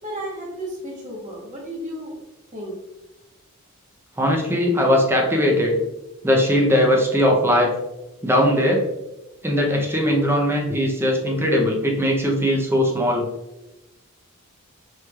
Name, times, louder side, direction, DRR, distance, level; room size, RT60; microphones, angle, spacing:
voice 1, 0.0-2.1 2.5-2.7, right 1 dB, 35° right, -3 dB, 1.1 m, -33 dB
voice 2, 4.2-5.8 6.2-7.7 8.2-8.8 9.4-13.3, equal, 10° right, 0 dB, 0.5 m, -19 dB
4.5 x 3.2 x 2.3 m, 0.97 s
head